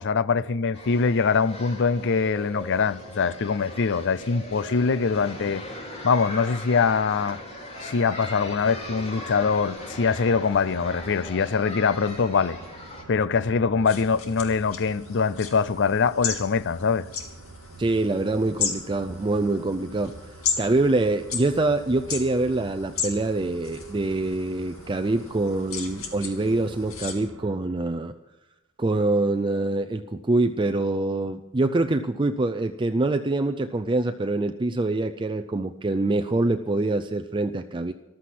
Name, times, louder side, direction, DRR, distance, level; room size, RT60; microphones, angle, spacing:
voice 1, 0.0-5.6 6.0-7.4 7.8-12.6 13.1-17.1, left 5 dB, 60° left, 0.5 m, -23 dB
sound 1, 0.7-13.0, left 1 dB, 30° left, 3.0 m, -39 dB
sound 2, 8.4-27.6, right 3 dB, 85° right, 0.9 m, -47 dB
sound 3, 13.8-27.1, left 6 dB, 85° left, 2.4 m, -35 dB
voice 2, 17.8-20.1 20.6-28.1 28.8-37.9, right 2 dB, 25° right, 0.5 m, -25 dB
14.5 x 13.0 x 5.9 m
head